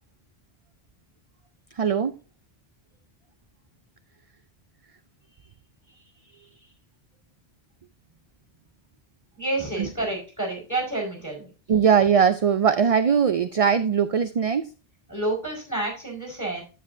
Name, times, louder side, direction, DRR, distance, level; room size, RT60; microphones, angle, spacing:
voice 1, 1.8-2.1 9.8-9.9 11.7-14.7, right 7 dB, 50° right, 10 dB, 0.4 m, -20 dB
voice 2, 9.4-11.5 15.1-16.6, right 2 dB, 15° left, 0 dB, 4.7 m, -29 dB
9.7 x 8.3 x 2.6 m, 0.33 s
omnidirectional pair, 1.1 m